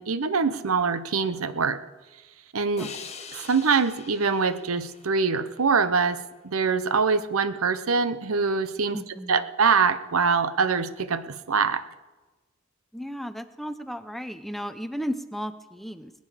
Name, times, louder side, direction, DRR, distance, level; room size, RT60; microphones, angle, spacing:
voice 1, 0.0-1.8 2.5-2.9 3.3-9.0 9.3-11.8, right 5 dB, 85° right, 13 dB, 0.8 m, -24 dB
sound 1, 2.8-6.1, left 6 dB, 30° left, 1.1 m, -44 dB
voice 2, 8.9-9.5 12.9-16.1, equal, ahead, 10 dB, 0.6 m, -34 dB
20.5 x 9.3 x 5.0 m, 1.2 s
head